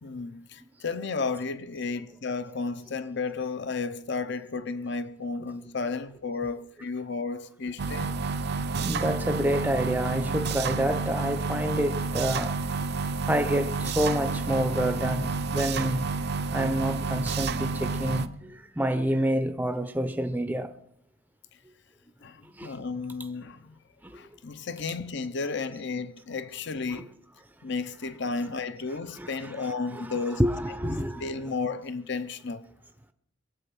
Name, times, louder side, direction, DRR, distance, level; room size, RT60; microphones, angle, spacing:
voice 1, 0.0-8.2 22.2-23.7 24.1-27.1 27.6-30.4 30.8-32.7, left 4 dB, 55° left, 0.7 m, -33 dB
sound 1, 7.8-18.3, right 4 dB, 50° right, 0.6 m, -30 dB
voice 2, 8.8-12.6 13.3-16.1 16.5-20.7 22.5-22.8 24.0-24.2 26.9-27.1 29.1-31.5, right 1 dB, 10° right, 0.6 m, -28 dB
22.5 x 8.0 x 6.0 m
head